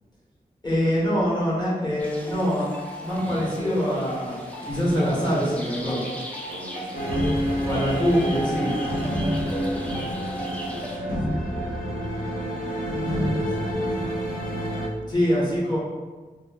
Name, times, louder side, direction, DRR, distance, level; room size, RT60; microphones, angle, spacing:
voice 1, 0.6-2.7 3.0-6.0 7.6-8.7 15.1-15.8, equal, 30° left, -7 dB, 1.2 m, -24 dB
sound 1, 2.0-11.0, right 1 dB, 10° left, 0.5 m, -35 dB
voice 2, 2.3-2.6 6.5-8.1 9.5-12.1 13.0-14.1 15.2-15.4, right 2 dB, 70° right, 3 dB, 0.4 m, -42 dB
sound 2, 6.9-14.9, equal, 75° left, 0.7 m, -27 dB
2.5 x 2.0 x 3.4 m, 1.3 s
wide cardioid pair, 70°, 15 cm